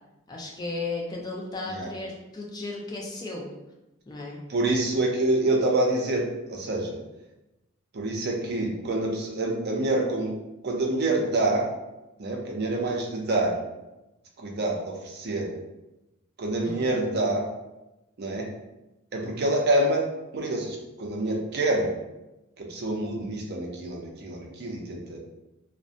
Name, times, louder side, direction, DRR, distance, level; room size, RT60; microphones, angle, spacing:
voice 1, 0.3-3.5 4.1-4.4 16.6-16.8, left 3 dB, 20° left, -2 dB, 0.3 m, -35 dB
voice 2, 4.5-7.0 7.9-10.3 10.6-11.7 12.2-13.6 14.4-15.5 16.4-17.4 18.2-18.5 19.1-20.0 20.3-21.9 22.6-25.2, right 2 dB, 50° right, 0 dB, 0.5 m, -26 dB
2.6 x 2.1 x 2.4 m, 0.97 s
head